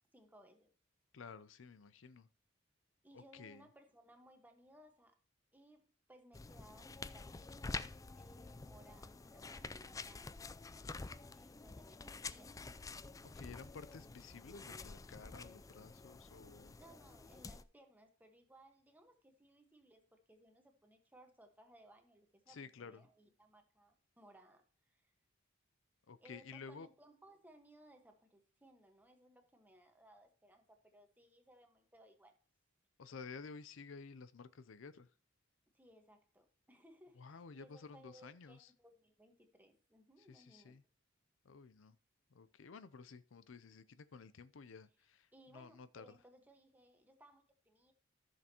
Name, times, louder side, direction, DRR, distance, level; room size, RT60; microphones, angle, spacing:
voice 1, 0.1-0.7 3.0-5.2 5.5-10.4 10.7-11.0 11.3-12.5 16.8-25.1 26.2-32.3 35.7-40.8 45.3-47.9, right 1 dB, 10° right, 1.3 m, -63 dB
voice 2, 1.1-2.3 3.1-3.7 13.3-16.8 22.5-23.0 26.1-26.9 33.0-35.1 37.2-38.7 40.3-40.8 41.4-42.0 42.3-46.2, left 5 dB, 75° left, 0.5 m, -53 dB
sound 1, 6.3-17.6, left 3 dB, 15° left, 0.3 m, -49 dB
14.0 x 6.5 x 2.9 m
head